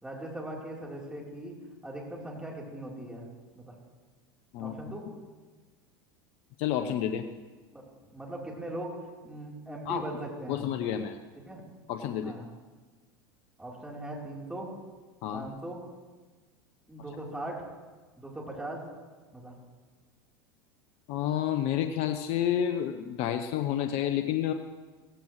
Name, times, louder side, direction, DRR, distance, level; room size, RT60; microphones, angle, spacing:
voice 1, 0.0-1.6 1.8-3.3 3.5-3.7 4.6-5.0 7.7-7.8 8.1-8.9 9.2-10.7 11.4-11.6 12.2-12.5 13.6-14.7 15.3-15.8 16.9-17.7 18.2-18.8 19.3-19.5, right 1 dB, 5° right, -3 dB, 3.8 m, -39 dB
voice 2, 6.6-7.2 9.9-10.0 10.5-11.2 11.9-12.3 15.2-15.5 21.1-24.5, left 10 dB, 55° left, 8 dB, 0.8 m, -29 dB
16.5 x 14.5 x 3.2 m, 1.3 s
hypercardioid pair, 90°, 12 cm